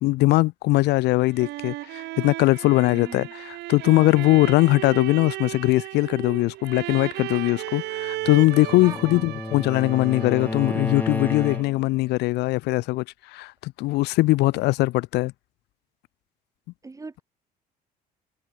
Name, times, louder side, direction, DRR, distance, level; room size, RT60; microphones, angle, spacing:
voice 1, 0.0-13.0 13.3-15.3, left 20 dB, 85° left, 0.6 m, -21 dB
sound 1, 1.0-11.9, right 18 dB, 80° right, 2.5 m, -35 dB
voice 2, 2.9-3.3 8.8-9.3 16.8-17.2, right 3 dB, 20° right, 4.4 m, -39 dB
Bowed string instrument, 8.0-12.0, left 2 dB, 10° left, 1.1 m, -32 dB
open air
cardioid pair, 110°, 17 cm